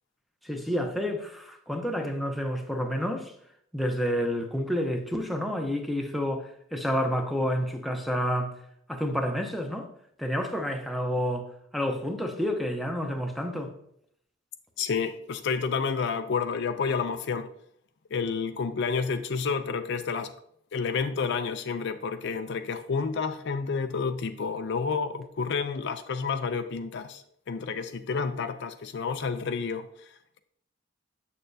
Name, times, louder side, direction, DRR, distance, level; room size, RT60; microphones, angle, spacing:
voice 1, 0.4-3.4 3.7-8.6 8.9-9.9 10.2-13.8, equal, ahead, 0.7 m, -29 dB
voice 2, 14.8-17.5 18.1-20.3 20.7-30.4, left 5 dB, 60° left, 0.4 m, -30 dB
7.5 x 6.6 x 2.6 m
head